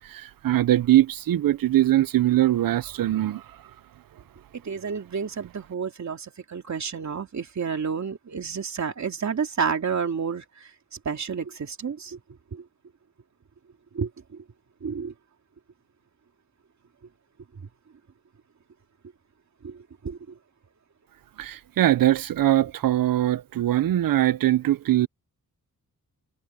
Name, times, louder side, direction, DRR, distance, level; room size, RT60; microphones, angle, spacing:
voice 1, 0.1-3.4 21.4-25.1, right 13 dB, 70° right, 0.6 m, -21 dB
voice 2, 4.5-10.4 11.0-12.2 12.5-12.6 13.9-14.4 14.8-15.1 19.6-20.2, right 6 dB, 50° right, 2.7 m, -30 dB
wide cardioid pair, 120°, 35 cm